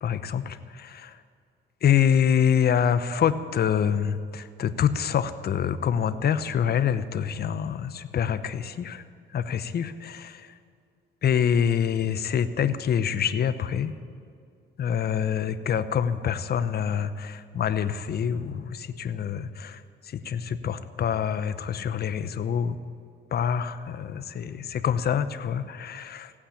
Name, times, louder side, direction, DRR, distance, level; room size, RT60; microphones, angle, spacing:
voice 1, 0.0-1.2 1.8-9.0 9.3-10.5 11.2-13.9 14.8-22.8 23.3-26.3, left 8 dB, 55° left, 12 dB, 0.8 m, -26 dB
16.0 x 8.7 x 8.5 m, 2.3 s
cardioid pair, 90°, 20 cm